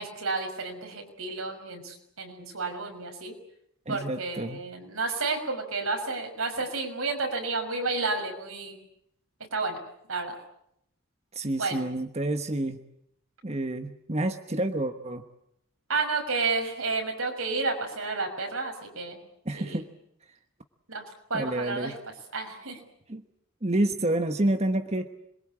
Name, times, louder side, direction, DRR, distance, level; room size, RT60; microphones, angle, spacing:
voice 1, 0.0-3.3 3.9-8.8 9.5-9.8 10.1-10.4 11.6-11.8 15.9-19.2 19.5-19.8 20.9-21.0 21.3-21.9 22.3-22.8, right 3 dB, 85° right, 3 dB, 6.2 m, -31 dB
voice 2, 3.9-4.6 11.3-12.8 13.4-15.2 19.4-19.9 21.3-22.0 23.1-23.2 23.6-25.1, right 1 dB, 30° right, 7 dB, 1.2 m, -28 dB
27.0 x 22.5 x 8.7 m, 0.75 s
head